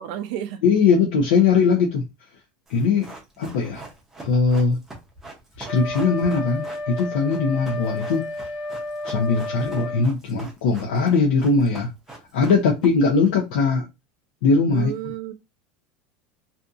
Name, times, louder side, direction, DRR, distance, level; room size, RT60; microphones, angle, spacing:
voice 1, 0.0-0.6 14.7-15.3, right 11 dB, 60° right, 0.4 m, -31 dB
voice 2, 0.6-2.0 2.7-3.1 3.4-3.8 4.2-4.8 5.7-8.3 9.0-11.9 12.3-13.9 14.4-14.9, left 4 dB, 85° left, 0.7 m, -20 dB
Run, 2.7-13.3 13.6-13.7, right 2 dB, 5° right, 0.6 m, -42 dB
Wind instrument woodwind instrument, 5.6-10.1, left 1 dB, 35° left, 1.3 m, -32 dB
2.6 x 2.6 x 2.4 m
supercardioid pair, 175°, 5 cm